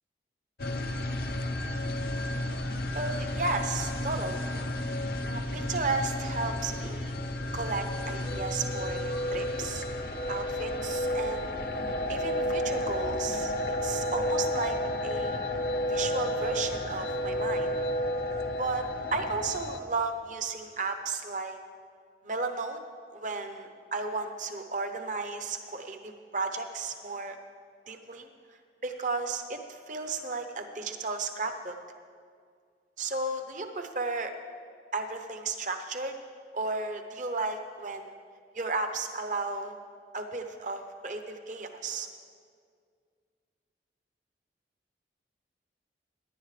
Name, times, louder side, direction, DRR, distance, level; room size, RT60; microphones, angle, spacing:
sound 1, 0.6-19.8, left 1 dB, 55° left, 0.6 m, -32 dB
sound 2, 1.9-12.4, equal, 90° right, 2.1 m, -49 dB
voice 1, 2.9-4.4 5.3-7.1 7.5-9.9 10.3-11.5 12.1-13.5 13.8-15.4 15.9-17.7 18.6-21.6 22.2-22.8 23.1-27.4 27.9-28.3 28.8-31.8 33.0-34.3 34.9-36.2 36.5-38.1 38.5-39.7 40.1-42.1, right 3 dB, 45° right, 6 dB, 0.8 m, -34 dB
17.5 x 10.5 x 3.3 m, 2.1 s
head